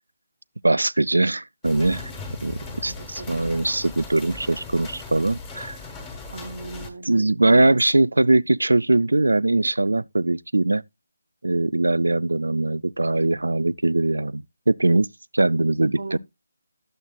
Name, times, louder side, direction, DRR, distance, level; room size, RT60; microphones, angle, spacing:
voice 1, 0.6-2.1 2.4-5.8 7.1-10.8 11.4-15.1 15.3-16.2, right 2 dB, 80° right, 0.3 m, -21 dB
sound 1, 1.6-6.9, left 3 dB, 15° left, 1.4 m, -38 dB
voice 2, 2.9-3.4 6.3-7.2 7.4-7.8 16.0-16.2, right 3 dB, 55° right, 0.7 m, -36 dB
11.0 x 7.2 x 2.3 m
figure-of-eight pair, 155°, 0 cm